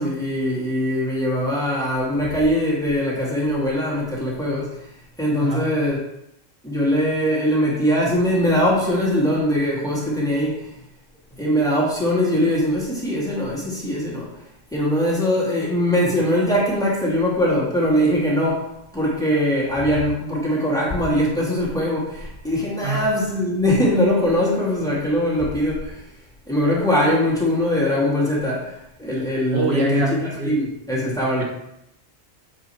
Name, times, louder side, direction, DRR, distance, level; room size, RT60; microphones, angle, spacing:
voice 1, 0.0-4.8 5.2-6.0 6.6-10.6 11.4-14.3 14.7-26.0 26.5-30.0 30.4-31.4, equal, 5° left, -6 dB, 2.2 m, -21 dB
voice 2, 5.4-5.8 22.8-23.1 29.5-30.6 31.4-31.5, right 2 dB, 75° right, 0 dB, 1.3 m, -24 dB
7.4 x 4.7 x 4.5 m, 0.82 s
omnidirectional pair, 1.1 m